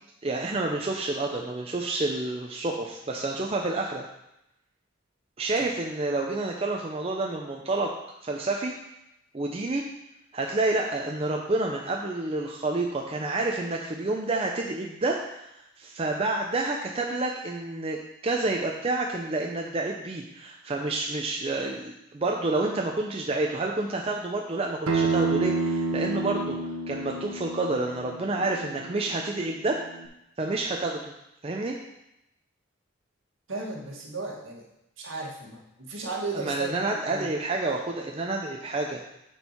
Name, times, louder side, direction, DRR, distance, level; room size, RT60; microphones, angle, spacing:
voice 1, 0.2-4.0 5.4-7.9 8.2-8.7 9.3-9.8 10.3-15.4 15.8-29.8 30.4-31.1 31.4-31.8 36.3-39.0, right 2 dB, 30° right, 0 dB, 0.5 m, -29 dB
Acoustic guitar, 24.9-30.1, right 3 dB, 85° right, 0.9 m, -30 dB
voice 2, 33.5-34.6 35.0-37.3, right 3 dB, 65° right, -2 dB, 1.7 m, -35 dB
8.9 x 4.5 x 4.5 m, 0.85 s
head